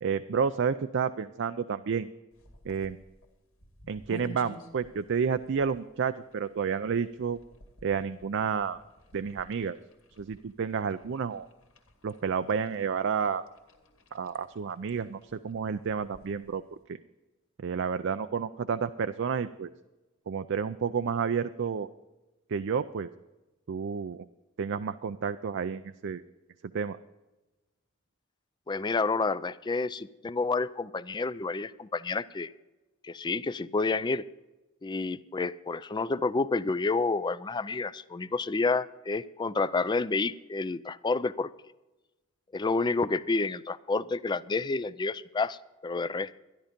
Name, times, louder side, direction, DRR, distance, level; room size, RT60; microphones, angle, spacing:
voice 1, 0.0-2.1 2.7-3.0 3.9-7.4 7.8-8.8 9.1-9.8 10.2-11.5 12.0-13.4 14.1-16.6 17.6-19.7 20.3-21.9 22.5-23.1 23.7-24.3 24.6-26.2 26.7-27.0, right 6 dB, 60° right, 10 dB, 0.4 m, -30 dB
sound 1, 2.3-16.8, left 1 dB, 75° left, 2.1 m, -53 dB
voice 2, 28.7-32.5 33.0-34.2 34.8-41.5 42.5-46.4, left 3 dB, 20° left, 17 dB, 0.4 m, -29 dB
13.0 x 11.0 x 5.2 m, 1.1 s
head